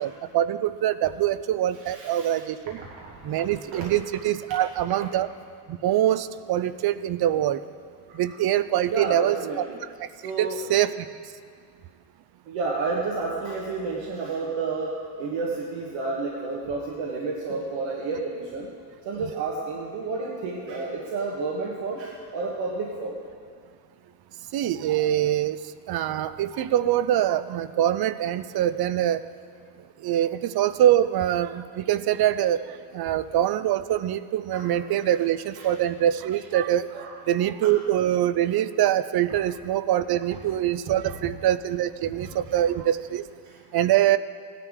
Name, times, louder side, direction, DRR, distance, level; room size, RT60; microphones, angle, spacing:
voice 1, 0.0-2.8 3.2-5.3 5.7-7.6 8.1-9.6 10.0-10.1 10.4-11.1 24.5-25.6 25.9-29.2 30.0-32.6 32.9-36.9 37.3-43.2 43.7-44.2, right 12 dB, 60° right, 13 dB, 0.6 m, -24 dB
voice 2, 1.8-2.4 2.8-3.9 8.1-8.4 8.9-9.8 10.2-10.6 12.5-18.7 19.0-23.2 34.5-34.7 35.5-35.7 36.9-37.2 39.4-39.5 42.2-42.3 43.4-43.5, right 3 dB, 90° right, -3 dB, 1.4 m, -31 dB
16.5 x 10.0 x 3.7 m, 2.1 s
cardioid pair, 85°, 44 cm